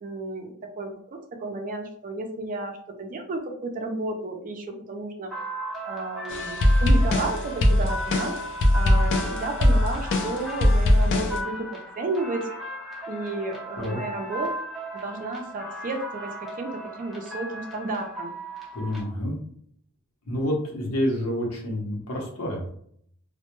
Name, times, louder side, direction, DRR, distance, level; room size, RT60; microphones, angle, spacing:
voice 1, 0.0-5.3 5.8-8.4 8.7-12.5 13.1-14.5 14.9-18.3, right 2 dB, 40° right, 3 dB, 0.4 m, -32 dB
sound 1, 5.3-19.0, equal, ahead, 0.8 m, -36 dB
sound 2, 6.3-11.4, left 1 dB, 60° left, 0.4 m, -21 dB
voice 2, 18.7-19.4 20.3-22.7, left 1 dB, 85° left, -1 dB, 0.8 m, -28 dB
2.1 x 2.1 x 2.9 m, 0.63 s
head